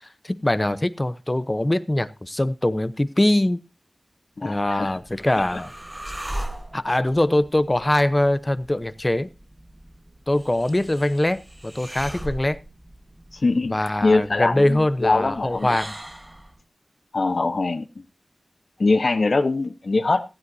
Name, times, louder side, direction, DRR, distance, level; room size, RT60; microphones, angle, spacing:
voice 1, 0.2-3.6 4.4-5.7 6.7-9.3 10.3-12.6 13.7-15.9, left 1 dB, 20° left, 0.8 m, -22 dB
voice 2, 4.4-5.0 13.3-13.8 14.0-15.8 17.1-18.0 18.8-20.2, left 3 dB, 60° left, 1.0 m, -22 dB
sound 1, 4.9-16.6, right 1 dB, 15° right, 1.1 m, -39 dB
15.5 x 14.5 x 2.7 m
wide cardioid pair, 75°, 0 cm